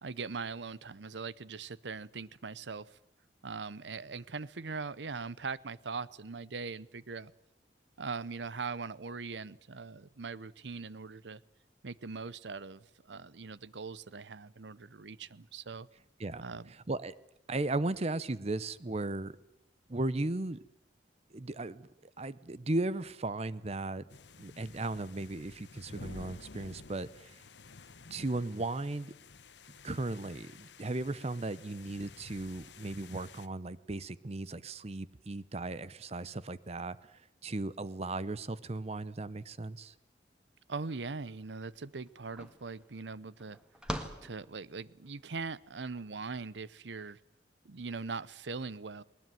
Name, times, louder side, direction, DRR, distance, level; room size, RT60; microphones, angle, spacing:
voice 1, 0.0-3.0 3.4-7.3 8.0-11.4 11.8-15.9 16.4-16.7 40.7-43.6 44.2-47.2 47.6-49.0, right 4 dB, 85° right, 0.8 m, -41 dB
voice 2, 16.7-17.1 17.5-19.3 19.9-20.6 21.3-21.9 22.2-24.0 24.4-27.4 28.1-29.1 29.8-39.9, right 2 dB, 35° right, 0.8 m, -36 dB
sound 1, 24.1-33.5, left 4 dB, 85° left, 1.1 m, -52 dB
sound 2, 41.7-41.8 42.1-45.1, equal, 5° right, 1.8 m, -43 dB
20.0 x 20.0 x 9.2 m
head